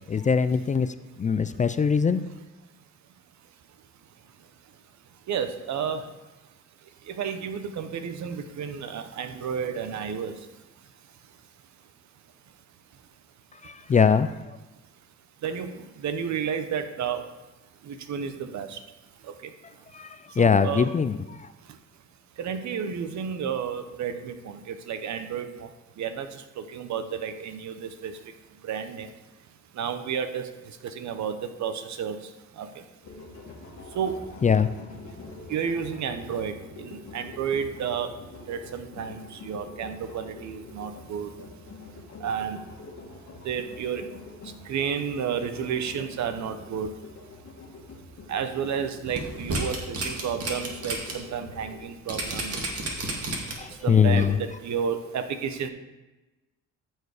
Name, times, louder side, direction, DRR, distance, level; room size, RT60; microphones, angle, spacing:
voice 1, 0.1-0.9 1.2-2.2 13.6-14.3 19.9-20.1 20.4-21.2 34.4-34.7 53.6-54.3, left 6 dB, 25° left, 12 dB, 0.4 m, -21 dB
voice 2, 5.3-6.2 6.8-10.6 15.4-17.4 17.8-18.8 19.2-19.8 20.3-20.9 21.6-21.8 22.4-28.3 28.6-29.1 29.7-32.9 33.9-34.2 35.5-41.3 42.2-42.6 43.4-44.1 44.4-47.0 48.2-52.6 53.1-53.2 53.6-55.7, right 7 dB, 65° right, 9 dB, 0.9 m, -32 dB
sound 1, 33.0-51.9, left 3 dB, 60° left, 1.6 m, -45 dB
sound 2, 49.1-51.1 51.5-51.6 52.1-53.7 54.2-54.3, right 2 dB, 50° right, 2.1 m, -31 dB
14.0 x 4.6 x 4.9 m, 1.1 s
cardioid pair, 90°, 30 cm